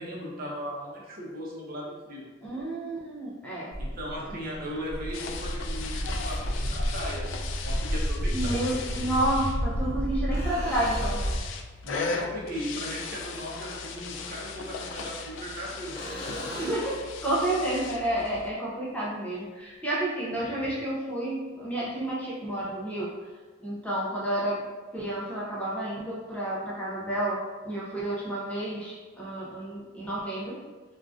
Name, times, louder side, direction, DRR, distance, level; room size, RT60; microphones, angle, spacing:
voice 1, 0.0-2.2 3.8-8.8 11.8-16.5, equal, 50° right, -4 dB, 0.7 m, -37 dB
voice 2, 2.4-3.7 4.3-4.4 8.3-11.2 16.5-23.1 23.6-24.6 24.9-30.6, right 1 dB, 5° left, -7 dB, 0.5 m, -30 dB
Walk footsteps, 3.7-11.4, equal, 80° right, 0.5 m, -31 dB
sound 1, 5.0-5.1 7.1-7.2 8.5-9.3 10.3-11.4 14.6-15.6 15.9-17.0 20.6-20.7, left 1 dB, 50° left, 0.8 m, -40 dB
sound 2, 5.1-18.5, left 4 dB, 75° left, 0.3 m, -38 dB
3.6 x 2.4 x 2.4 m, 1.3 s
head